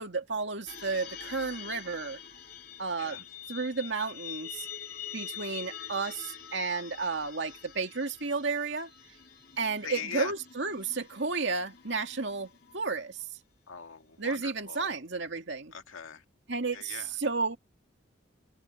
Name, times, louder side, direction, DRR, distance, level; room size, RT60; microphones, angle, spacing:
voice 1, 0.0-2.2 2.8-4.7 5.1-8.9 9.6-13.2 14.2-15.7 16.5-17.6, right 4 dB, 65° right, 2.2 m, -32 dB
sound 1, 0.7-13.2, left 9 dB, 50° left, 2.8 m, -46 dB
voice 2, 9.8-10.3 13.7-14.9 15.7-16.2 16.7-17.1, left 6 dB, 90° left, 2.0 m, -40 dB
head